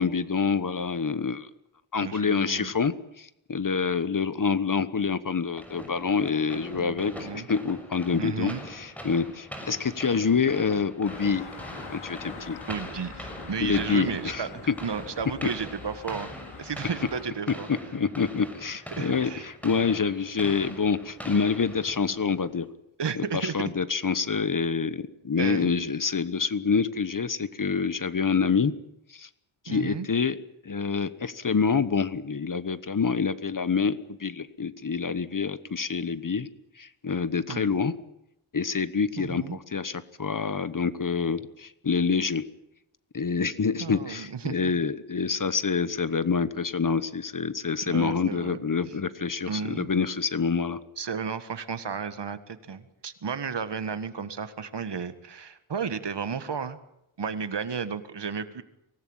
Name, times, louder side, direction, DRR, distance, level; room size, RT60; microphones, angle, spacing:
voice 1, 0.0-1.5 1.9-11.5 11.9-12.6 13.6-14.7 17.9-22.7 23.1-28.7 29.1-29.3 29.6-30.4 30.6-36.5 36.8-37.9 38.5-42.4 43.1-50.8, left 5 dB, 40° left, 14 dB, 1.3 m, -27 dB
voice 2, 2.0-2.7 6.7-7.5 8.2-8.6 12.7-14.5 14.8-17.7 18.9-19.5 23.0-23.7 25.4-25.7 29.7-30.1 37.5-37.8 39.2-39.6 43.8-44.7 47.9-48.6 49.5-49.9 51.0-56.8 57.2-58.6, right 6 dB, 55° right, 11 dB, 1.8 m, -33 dB
sound 1, 5.6-22.3, equal, 5° left, 6.6 m, -42 dB
sound 2, 11.0-17.2, left 4 dB, 80° left, 4.9 m, -44 dB
24.5 x 18.5 x 9.0 m, 0.84 s
wide cardioid pair, 110°, 49 cm